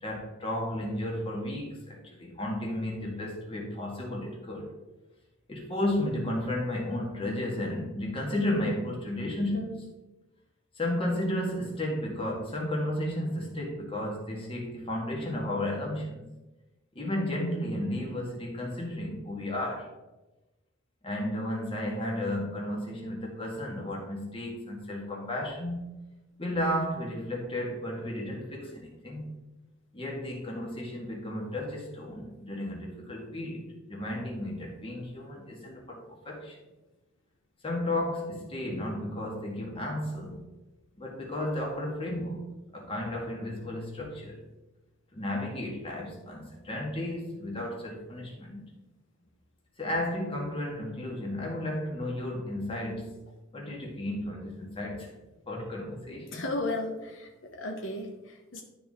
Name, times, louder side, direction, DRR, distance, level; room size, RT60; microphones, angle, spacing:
voice 1, 0.0-4.7 5.5-9.9 10.8-16.2 16.9-19.9 21.0-25.9 26.4-29.3 29.9-36.6 37.6-40.5 41.0-44.4 45.1-48.6 49.8-53.2 53.5-55.2 55.5-56.5, left 1 dB, 30° left, -1 dB, 1.9 m, -33 dB
voice 2, 56.3-58.6, left 2 dB, 75° left, 2 dB, 1.0 m, -34 dB
12.0 x 4.2 x 3.7 m, 1.1 s
head